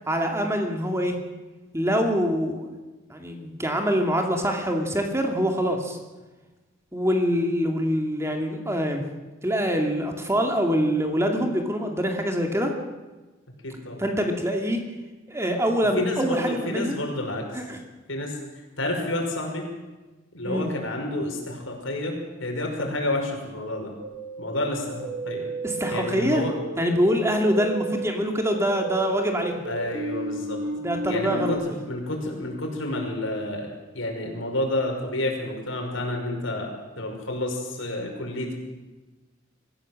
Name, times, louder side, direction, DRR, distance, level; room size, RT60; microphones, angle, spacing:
voice 1, 0.1-1.1 1.7-2.7 3.1-6.0 6.9-9.0 9.4-12.7 14.0-14.8 15.3-16.9 17.5-17.8 20.4-20.7 25.6-26.5 26.8-29.6 30.8-31.8, equal, 15° right, 3 dB, 2.4 m, -24 dB
voice 2, 13.6-14.0 16.0-17.6 18.1-18.4 18.8-19.7 20.3-23.9 24.4-25.5 25.9-26.5 29.7-30.6 31.1-31.6 31.8-36.7 37.0-38.5, left 1 dB, 75° left, 1 dB, 5.7 m, -29 dB
sound 1, 24.0-31.5, right 2 dB, 65° right, 6.1 m, -34 dB
23.5 x 15.5 x 7.7 m, 1.2 s
head